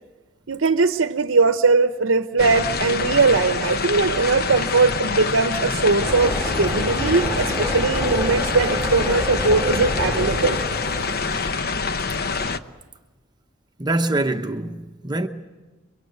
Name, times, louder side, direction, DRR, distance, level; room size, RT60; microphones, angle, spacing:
voice 1, 0.5-10.6, right 4 dB, 65° right, 0.8 m, -20 dB
sound 1, 2.4-12.6, left 4 dB, 50° left, 1.0 m, -26 dB
sound 2, 6.0-11.5, left 4 dB, 30° left, 4.6 m, -42 dB
sound 3, 6.0-11.5, equal, 5° right, 2.8 m, -28 dB
voice 2, 13.8-15.3, right 2 dB, 20° right, 0.9 m, -24 dB
30.0 x 23.0 x 8.1 m
head